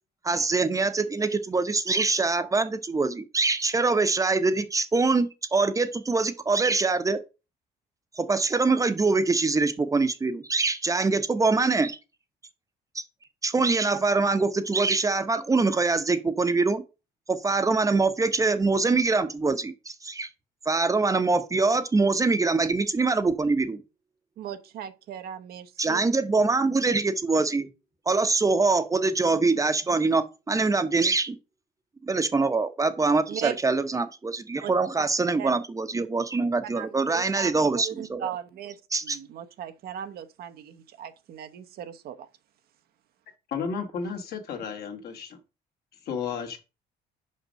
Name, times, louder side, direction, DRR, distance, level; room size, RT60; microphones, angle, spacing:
voice 1, 0.2-7.2 8.2-12.0 12.9-13.0 13.4-16.8 17.3-20.3 20.7-23.8 25.8-27.7 28.1-31.4 32.0-38.3 38.9-39.2, right 3 dB, 20° right, 0.8 m, -24 dB
voice 2, 24.4-26.0 33.3-33.6 34.6-34.7 35.0-35.1 35.4-35.5 36.7-42.3, right 10 dB, 65° right, 0.9 m, -37 dB
voice 3, 43.5-45.4 46.1-46.6, left 6 dB, 65° left, 2.0 m, -33 dB
5.5 x 5.3 x 6.4 m
cardioid pair, 110°, 17 cm